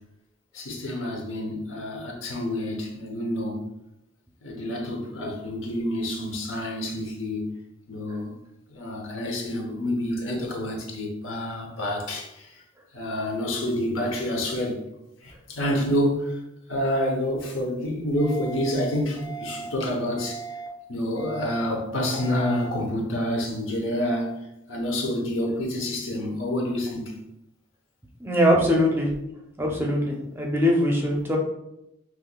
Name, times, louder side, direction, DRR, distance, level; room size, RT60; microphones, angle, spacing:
voice 1, 0.5-3.7 4.4-7.4 7.9-8.3 8.7-12.5 12.9-14.8 15.2-16.4 16.7-20.4 20.9-24.3 24.7-27.2, left 1 dB, 80° left, 1 dB, 0.9 m, -28 dB
sound 1, 18.2-18.7 19.2-19.7 20.2-20.7 21.2-21.7 22.2-22.7, right 6 dB, 55° left, 1.1 m, -38 dB
voice 2, 28.2-29.1 29.6-31.4, equal, 10° right, -1 dB, 0.5 m, -22 dB
5.5 x 3.0 x 2.3 m, 0.86 s
head